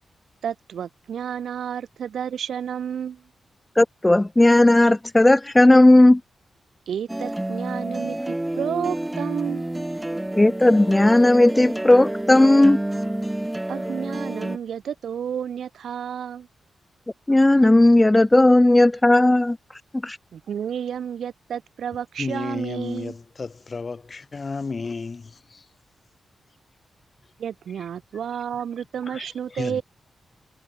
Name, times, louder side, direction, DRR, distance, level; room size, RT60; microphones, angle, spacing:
voice 1, 0.4-3.2 6.9-9.9 13.7-16.5 20.3-23.1 27.4-29.8, right 8 dB, 75° right, 1.0 m, -31 dB
voice 2, 3.8-6.2 10.4-12.8 17.3-19.6 20.0-20.2, left 1 dB, 20° left, 0.6 m, -15 dB
sound 1, 7.1-14.6, right 1 dB, 15° right, 1.8 m, -29 dB
voice 3, 22.2-25.7 27.7-27.9 29.0-29.8, left 4 dB, 45° left, 2.0 m, -33 dB
supercardioid pair, 50°, 0 cm